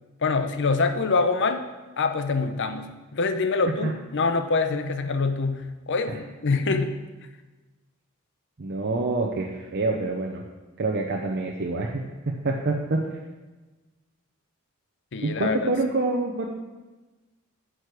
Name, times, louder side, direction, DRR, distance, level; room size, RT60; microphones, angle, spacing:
voice 1, 0.2-1.6 2.0-6.9 15.1-15.6, left 4 dB, 55° left, 8 dB, 0.7 m, -25 dB
voice 2, 8.6-10.4 10.8-13.0 15.2-16.5, right 2 dB, 50° right, 0 dB, 0.7 m, -26 dB
9.1 x 6.4 x 4.9 m, 1.2 s
head